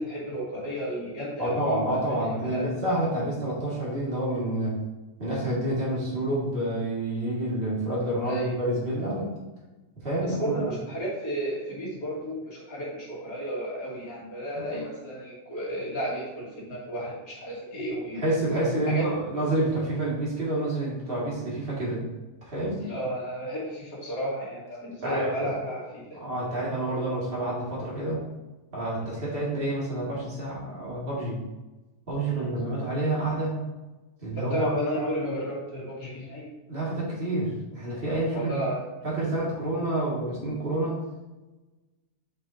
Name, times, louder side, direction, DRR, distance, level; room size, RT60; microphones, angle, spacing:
voice 1, 0.0-2.2 2.4-2.7 8.2-8.6 10.2-18.2 18.9-19.1 22.8-26.2 32.3-32.5 34.3-36.4 38.3-38.9, equal, 35° left, -8 dB, 2.8 m, -32 dB
voice 2, 1.4-4.8 5.2-9.3 10.0-10.6 14.6-14.7 18.2-22.0 22.4-22.8 25.0-25.3 26.2-28.2 28.7-31.4 32.1-33.6 34.2-34.7 36.7-38.6 39.0-41.0, right 1 dB, 20° right, -6 dB, 1.8 m, -28 dB
7.2 x 5.6 x 2.8 m, 1.1 s
omnidirectional pair, 3.4 m